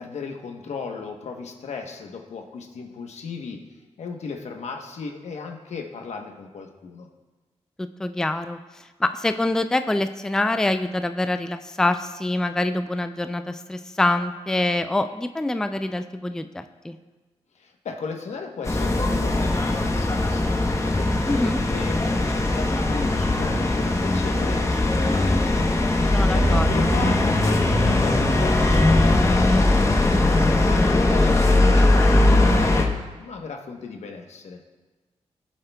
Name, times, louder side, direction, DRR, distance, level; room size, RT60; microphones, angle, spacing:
voice 1, 0.0-3.6 4.0-7.1 17.5-25.7 26.0-34.6, left 5 dB, 80° left, 3 dB, 1.0 m, -36 dB
voice 2, 7.8-17.0 21.2-21.6 26.1-26.7, left 2 dB, 5° left, 9 dB, 0.3 m, -25 dB
sound 1, 18.6-32.9, left 2 dB, 25° left, 0.9 m, -20 dB
15.0 x 7.4 x 2.3 m, 1.2 s
cardioid pair, 85°, 11 cm